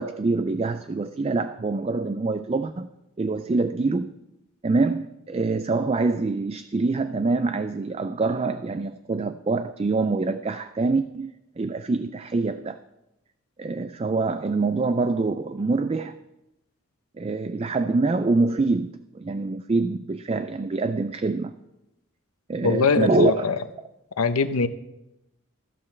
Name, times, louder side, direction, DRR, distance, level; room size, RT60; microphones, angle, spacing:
voice 1, 0.0-2.9 3.2-4.1 4.6-12.8 13.6-16.2 17.2-21.5 22.5-23.5, right 3 dB, 25° right, 11 dB, 0.3 m, -25 dB
voice 2, 22.6-23.5 24.2-24.7, left 4 dB, 85° left, 11 dB, 0.8 m, -21 dB
14.0 x 13.0 x 3.3 m, 0.94 s
head